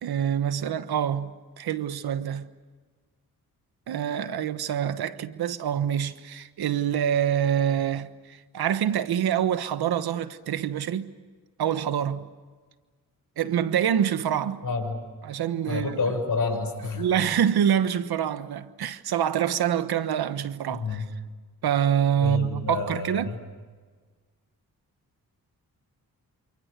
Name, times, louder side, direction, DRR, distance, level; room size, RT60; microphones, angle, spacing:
voice 1, 0.0-2.5 3.9-11.1 11.6-12.3 13.4-14.6 15.2-16.0 16.9-21.0 21.6-23.3, right 9 dB, 90° right, 1.3 m, -26 dB
voice 2, 14.6-15.0 15.7-17.1 20.7-21.1 22.2-23.4, left 4 dB, 60° left, 6.5 m, -29 dB
28.5 x 27.5 x 6.8 m
cardioid pair, 65°, 37 cm